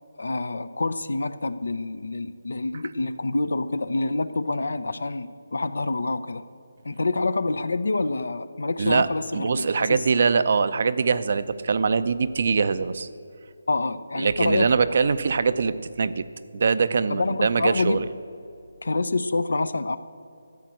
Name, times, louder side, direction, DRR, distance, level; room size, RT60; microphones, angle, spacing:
voice 1, 0.2-6.4 6.8-10.0 13.7-14.7 15.0-15.1 17.1-18.0 18.8-20.0, left 3 dB, 80° left, 14 dB, 0.6 m, -27 dB
voice 2, 8.8-9.1 9.3-13.1 14.2-16.2 16.5-18.1, right 5 dB, 50° right, 13 dB, 0.6 m, -23 dB
13.0 x 8.2 x 7.6 m, 2.4 s
figure-of-eight pair, 160°, 0 cm